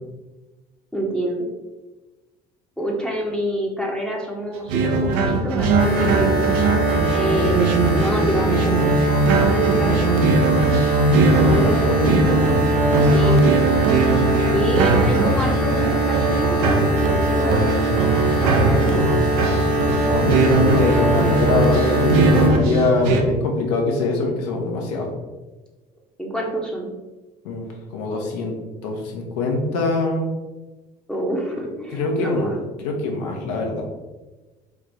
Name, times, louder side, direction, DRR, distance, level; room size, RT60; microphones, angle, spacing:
voice 1, 0.9-1.5 2.8-6.5 7.1-8.9 9.3-10.2 13.0-13.5 14.5-17.8 18.4-18.9 26.2-26.9 31.1-32.6, equal, 5° left, -2 dB, 0.8 m, -27 dB
sound 1, 4.7-23.2, right 3 dB, 65° right, 0.6 m, -20 dB
sound 2, 5.8-22.5, right 1 dB, 90° left, 1.1 m, -22 dB
voice 2, 11.2-12.2 20.0-25.1 27.4-28.6 28.8-30.3 31.9-32.5 32.8-33.8, left 3 dB, 70° left, 1 dB, 0.8 m, -23 dB
4.4 x 2.5 x 3.3 m, 1.2 s
figure-of-eight pair, 55°, 21 cm